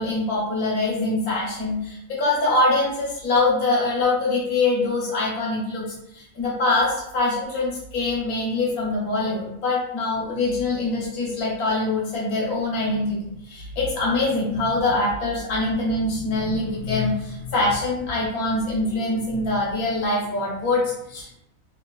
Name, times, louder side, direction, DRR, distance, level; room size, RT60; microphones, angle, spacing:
voice 1, 0.0-21.4, left 2 dB, 80° left, -6 dB, 1.3 m, -24 dB
3.1 x 2.8 x 2.2 m, 0.79 s
omnidirectional pair, 1.6 m